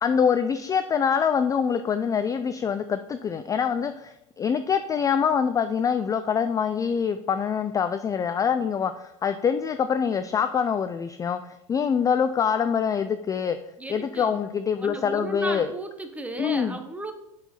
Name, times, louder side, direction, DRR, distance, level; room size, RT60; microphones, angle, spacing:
voice 1, 0.0-13.6 13.9-15.7 16.4-16.8, left 7 dB, 20° left, 11 dB, 0.3 m, -25 dB
voice 2, 13.8-14.4 14.8-17.1, right 2 dB, 10° right, 6 dB, 1.0 m, -35 dB
7.5 x 4.6 x 4.2 m, 0.83 s
hypercardioid pair, 95°, 18 cm